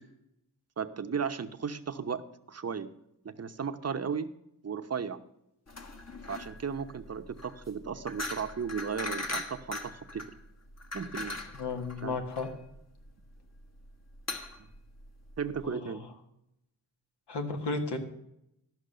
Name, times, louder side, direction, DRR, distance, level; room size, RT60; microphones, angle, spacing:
voice 1, 0.8-2.9 3.2-4.3 4.6-5.2 6.3-10.2 10.9-11.4 12.0-12.2 15.4-16.0, right 6 dB, 35° right, 9 dB, 0.9 m, -35 dB
sound 1, 5.7-15.7, left 2 dB, 40° left, 1.4 m, -40 dB
voice 2, 11.6-12.5 15.6-15.9 17.3-18.0, left 3 dB, 75° left, 4 dB, 1.8 m, -33 dB
13.0 x 5.9 x 6.7 m, 0.81 s
cardioid pair, 75°, 41 cm